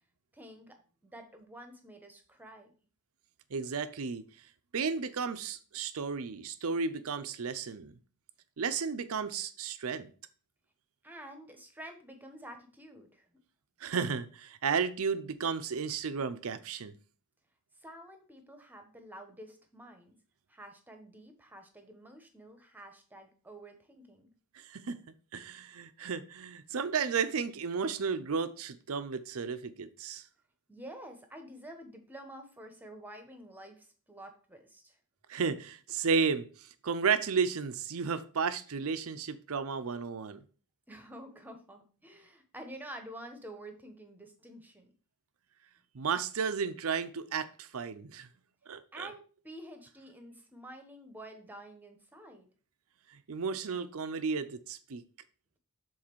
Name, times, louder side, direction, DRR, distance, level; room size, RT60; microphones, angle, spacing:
voice 1, 0.3-2.7 11.0-13.3 17.8-20.2 20.5-24.3 30.7-35.0 40.9-44.9 48.9-52.5, right 1 dB, 10° right, 1.0 m, -49 dB
voice 2, 3.5-4.3 4.7-8.0 8.6-10.1 13.8-16.9 24.5-25.0 25.3-30.2 35.3-36.5 36.8-40.4 45.9-48.3 48.7-49.1 53.3-55.0, right 5 dB, 65° right, 0.6 m, -33 dB
7.3 x 4.0 x 4.5 m
head